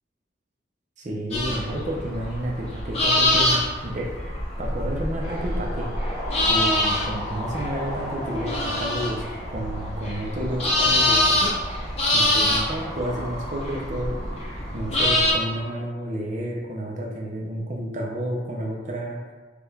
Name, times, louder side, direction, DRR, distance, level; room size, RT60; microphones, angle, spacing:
voice 1, 1.0-4.3 4.6-5.9 6.4-9.2 9.5-11.5 12.1-14.2 14.7-19.2, right 1 dB, 40° right, -2 dB, 0.6 m, -30 dB
sound 1, 1.3-15.3, left 1 dB, 35° left, 0.7 m, -25 dB
sound 2, 5.2-15.8, equal, 15° right, 0.9 m, -37 dB
4.9 x 2.3 x 3.3 m, 1.3 s
head